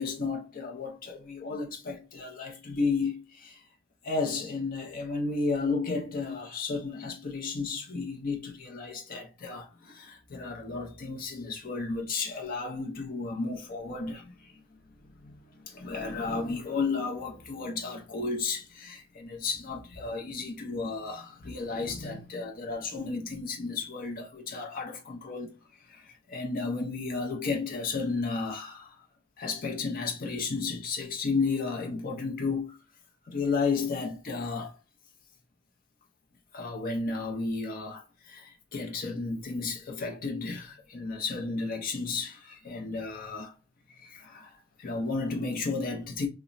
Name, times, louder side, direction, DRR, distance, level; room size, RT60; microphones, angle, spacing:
voice 1, 0.0-3.6 4.0-14.6 15.0-25.5 25.8-29.0 29.4-32.8 33.3-34.7 36.5-43.5 43.9-44.5 44.8-46.3, left 4 dB, 50° left, 0.6 m, -33 dB
3.0 x 2.1 x 2.5 m
head